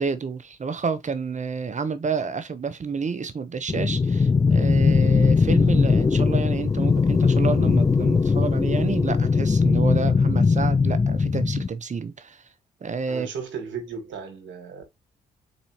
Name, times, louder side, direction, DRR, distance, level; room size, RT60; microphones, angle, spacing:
voice 1, 0.0-12.4 12.8-13.3, right 5 dB, 40° right, 0.9 m, -29 dB
sound 1, 3.7-11.7, left 4 dB, 20° left, 0.3 m, -20 dB
voice 2, 13.1-14.9, right 6 dB, 70° right, 1.7 m, -35 dB
4.1 x 4.1 x 2.8 m
hypercardioid pair, 45°, 20 cm